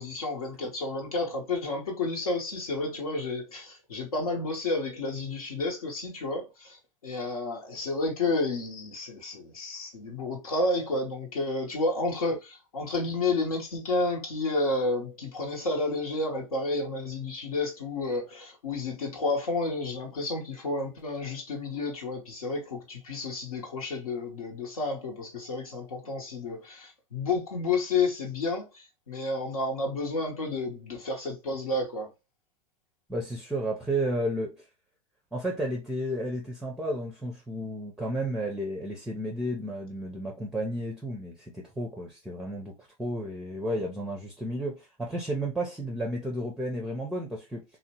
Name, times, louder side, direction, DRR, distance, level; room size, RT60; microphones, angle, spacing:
voice 1, 0.0-32.1, left 3 dB, 85° left, 0.9 m, -31 dB
voice 2, 33.1-34.7 35.3-47.6, right 1 dB, 5° right, 0.5 m, -32 dB
2.8 x 2.1 x 2.8 m
hypercardioid pair, 100°, 18 cm